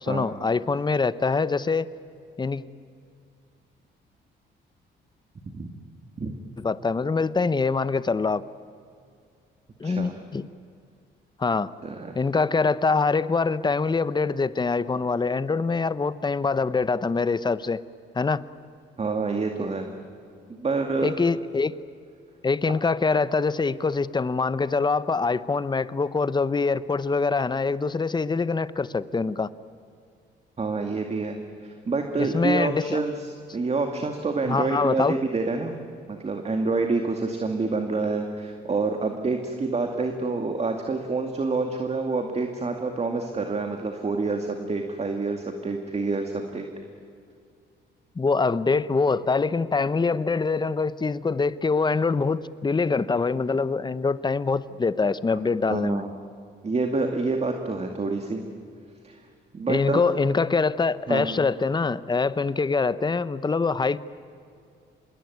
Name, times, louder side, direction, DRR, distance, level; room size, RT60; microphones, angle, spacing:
voice 1, 0.0-1.9 2.4-2.6 6.6-8.4 9.8-10.5 11.4-11.7 12.1-17.8 18.1-18.4 21.0-21.7 22.4-29.5 32.2-33.0 34.5-35.2 48.2-56.0 59.7-64.0, left 4 dB, 20° left, 16 dB, 0.9 m, -24 dB
voice 2, 11.8-12.1 19.0-19.9 20.5-21.1 30.6-31.4 31.6-33.3 33.5-35.7 36.1-46.7 55.3-55.4 55.7-56.1 56.6-58.4 59.0-59.2 59.5-60.0 61.1-61.3, right 3 dB, 30° right, 4 dB, 2.3 m, -27 dB
26.0 x 21.5 x 9.5 m, 2.4 s
cardioid pair, 90°, 20 cm